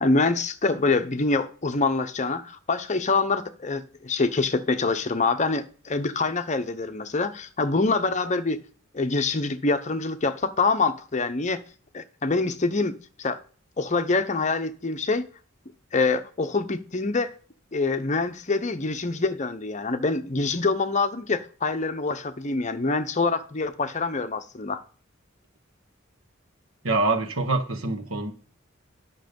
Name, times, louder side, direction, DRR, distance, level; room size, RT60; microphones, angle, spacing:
voice 1, 0.0-8.6 8.9-11.6 11.9-12.9 13.2-13.4 13.8-15.3 15.9-17.3 17.7-24.8, left 3 dB, 35° left, 0.8 m, -25 dB
voice 2, 26.8-28.3, right 3 dB, 85° right, 1.5 m, -25 dB
10.0 x 6.2 x 5.3 m
head